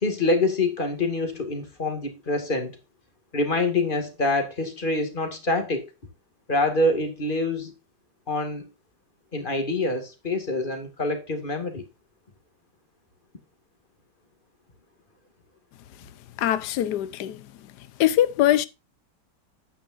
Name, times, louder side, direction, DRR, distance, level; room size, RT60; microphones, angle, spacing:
voice 1, 0.0-2.8 3.3-5.9 6.5-7.7 8.3-8.7 9.3-11.8, left 2 dB, 30° left, 2.2 m, -26 dB
voice 2, 16.4-17.4 18.0-18.7, left 12 dB, 70° left, 1.3 m, -22 dB
10.5 x 8.8 x 2.6 m
omnidirectional pair, 1.9 m